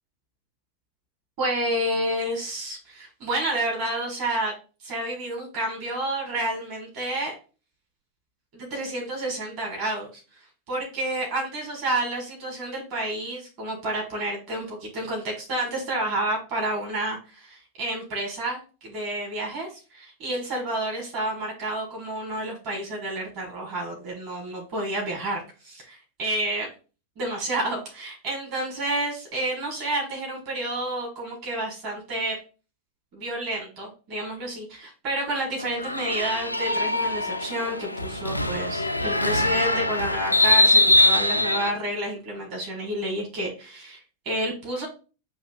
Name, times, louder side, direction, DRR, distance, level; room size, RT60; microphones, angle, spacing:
voice 1, 1.4-4.5 4.8-7.3 8.5-10.1 10.7-26.7 27.2-32.4 33.1-44.0 44.3-44.9, right 1 dB, 40° right, -1 dB, 1.8 m, -30 dB
sound 1, 35.6-41.7, left 2 dB, 85° left, 0.3 m, -22 dB
7.8 x 2.7 x 2.4 m, 0.34 s
figure-of-eight pair, 90°, 0 cm